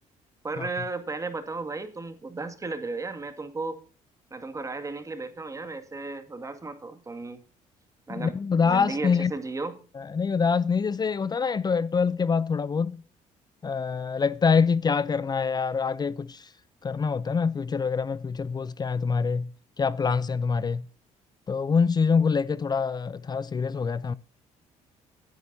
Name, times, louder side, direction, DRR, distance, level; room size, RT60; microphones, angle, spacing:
voice 1, 0.4-3.8 4.3-7.4 8.1-8.3 8.6-9.8, right 3 dB, 25° right, 2.1 m, -34 dB
voice 2, 8.1-9.3 9.9-13.0 13.6-16.5 16.8-19.5 19.8-20.9 21.5-24.1, left 5 dB, 30° left, 0.6 m, -25 dB
21.0 x 9.9 x 2.7 m
cardioid pair, 95°, 14 cm